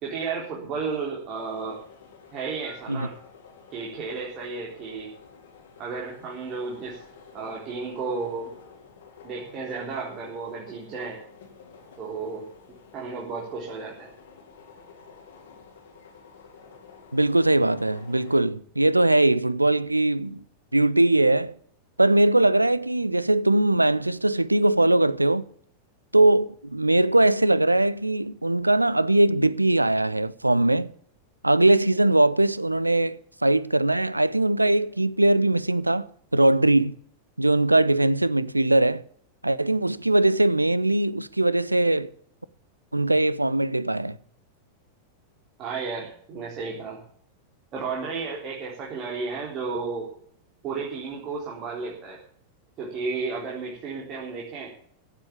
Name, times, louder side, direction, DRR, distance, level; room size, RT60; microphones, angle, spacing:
voice 1, 0.0-1.8 2.3-3.1 3.7-5.1 5.8-7.0 7.3-8.5 9.2-11.2 12.0-12.4 12.9-14.1 45.6-47.0 47.7-50.1 50.6-52.2 52.8-54.7, right 4 dB, 35° right, 3.9 m, -33 dB
sound 1, 1.3-18.4, left 5 dB, 60° left, 4.0 m, -50 dB
voice 2, 17.1-20.4 20.7-21.5 22.0-25.5 26.1-30.9 31.4-36.9 37.4-39.0 39.4-42.1 42.9-44.2, right 2 dB, 85° right, 0.6 m, -21 dB
16.0 x 7.5 x 8.6 m
figure-of-eight pair, 90°, 0 cm